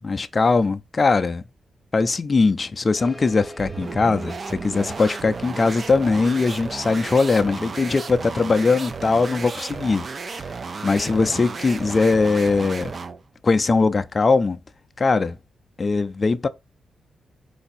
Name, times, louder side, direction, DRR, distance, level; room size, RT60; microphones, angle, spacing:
voice 1, 0.0-1.4 1.9-10.4 10.8-12.9 13.4-14.6 15.0-15.4 15.8-16.5, left 4 dB, 30° left, 0.4 m, -20 dB
sound 1, 3.0-8.0, right 1 dB, 25° right, 1.4 m, -44 dB
sound 2, 3.6-13.2, right 4 dB, 40° right, 0.4 m, -34 dB
4.8 x 2.6 x 4.1 m
cardioid pair, 110°, 0 cm